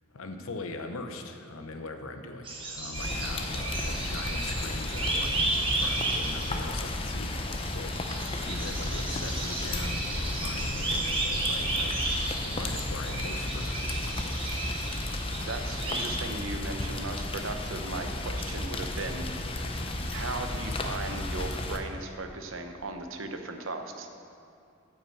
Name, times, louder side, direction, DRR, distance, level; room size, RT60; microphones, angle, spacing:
voice 1, 0.1-14.5, left 3 dB, 80° left, 6 dB, 0.8 m, -41 dB
sound 1, 2.4-16.1, right 2 dB, 25° right, 1.2 m, -33 dB
Rain, 2.9-21.8, left 2 dB, 25° left, 0.6 m, -33 dB
voice 2, 15.4-19.5 20.1-24.1, right 3 dB, 70° right, 6 dB, 0.8 m, -37 dB
8.9 x 5.9 x 7.8 m, 2.4 s
head